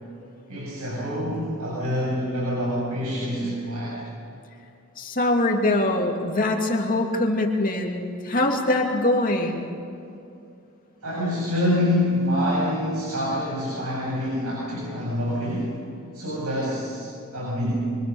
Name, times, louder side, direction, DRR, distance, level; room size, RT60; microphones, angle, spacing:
voice 1, 0.5-4.0 11.0-15.7 16.1-18.0, left 1 dB, 80° right, -7 dB, 7.9 m, -26 dB
voice 2, 5.0-9.7, left 2 dB, 40° left, 1 dB, 2.6 m, -23 dB
26.0 x 24.0 x 7.2 m, 2.6 s
head